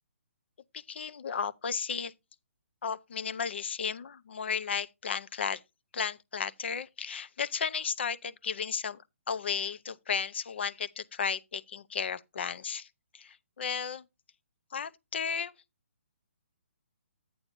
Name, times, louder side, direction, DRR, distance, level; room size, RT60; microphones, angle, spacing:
voice 1, 0.7-2.1 2.8-5.6 5.9-9.0 9.3-12.9 13.1-14.0 14.7-15.5, left 6 dB, 55° left, 0.7 m, -34 dB
11.0 x 8.6 x 2.7 m
hypercardioid pair, 165°, 7 cm